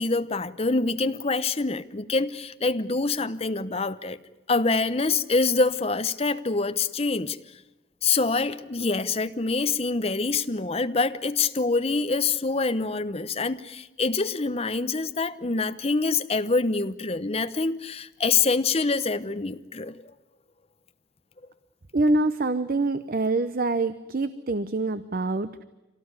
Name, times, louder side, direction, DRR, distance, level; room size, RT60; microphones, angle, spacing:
voice 1, 0.0-4.2 4.5-7.4 8.0-20.0, left 3 dB, 35° left, 0.9 m, -25 dB
voice 2, 21.9-25.6, right 2 dB, 50° right, 0.8 m, -25 dB
26.0 x 18.5 x 9.6 m
head